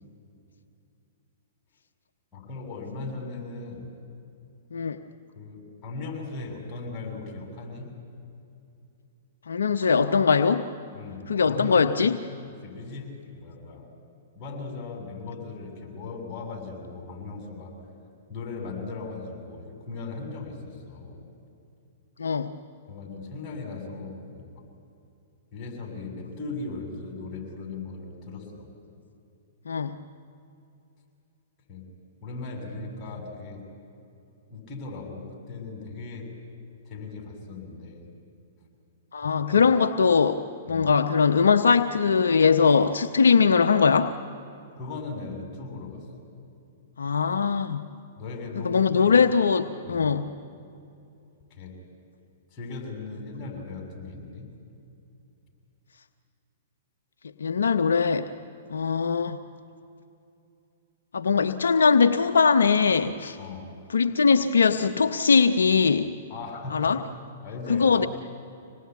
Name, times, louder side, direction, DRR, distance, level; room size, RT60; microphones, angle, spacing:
voice 1, 2.3-3.9 5.4-7.9 10.9-11.8 12.6-13.9 14.3-17.8 18.3-21.2 22.9-24.6 25.5-28.7 31.7-31.9 32.2-33.6 34.5-36.3 36.9-38.0 39.2-39.7 40.7-40.9 44.8-46.1 48.2-49.2 49.9-50.1 51.5-51.8 52.5-54.5 63.4-63.7 66.3-67.0 67.4-68.1, left 3 dB, 30° left, 1 dB, 6.9 m, -38 dB
voice 2, 9.5-10.7 11.3-12.2 22.2-22.5 29.7-30.0 39.1-44.1 47.0-47.9 48.6-50.3 57.4-58.3 58.7-59.4 61.1-63.4 63.9-66.2 66.7-67.0 67.7-68.1, left 5 dB, 80° left, 7 dB, 0.8 m, -21 dB
25.5 x 19.5 x 9.3 m, 2.7 s
hypercardioid pair, 120°, 0 cm